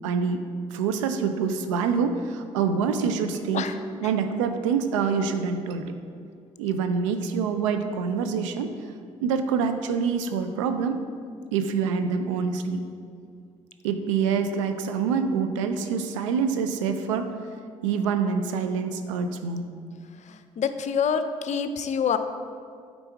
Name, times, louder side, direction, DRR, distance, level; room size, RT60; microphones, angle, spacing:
voice 1, 0.0-0.4 0.7-3.7 3.9-5.9 6.6-8.7 9.2-11.0 11.5-12.8 13.8-17.3 17.8-19.7, right 6 dB, 85° right, 8 dB, 0.5 m, -26 dB
voice 2, 20.3-22.2, left 7 dB, 50° left, 10 dB, 0.5 m, -26 dB
9.0 x 4.0 x 4.6 m, 2.2 s
hypercardioid pair, 50°, 16 cm